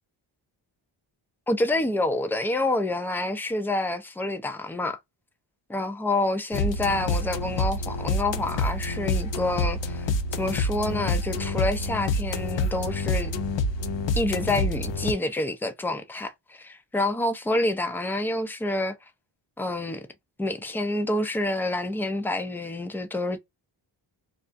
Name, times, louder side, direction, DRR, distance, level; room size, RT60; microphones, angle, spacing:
voice 1, 1.5-5.0 5.7-13.3 14.2-19.0 19.6-20.1 20.4-23.4, left 2 dB, 5° left, 0.4 m, -28 dB
sound 1, 6.5-15.1, left 2 dB, 60° left, 0.6 m, -27 dB
2.4 x 2.1 x 2.5 m
cardioid pair, 85°, 49 cm